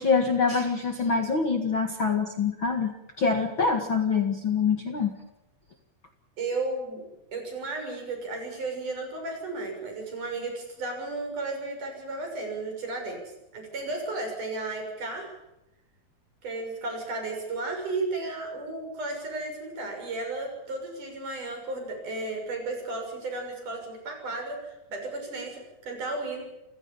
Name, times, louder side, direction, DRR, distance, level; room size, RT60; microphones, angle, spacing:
voice 1, 0.0-5.1, left 5 dB, 40° left, 5 dB, 2.1 m, -25 dB
voice 2, 6.4-7.0 7.3-13.2 13.5-15.3 16.4-26.5, right 2 dB, 55° right, 3 dB, 8.0 m, -34 dB
29.0 x 16.5 x 7.2 m, 0.94 s
omnidirectional pair, 4.2 m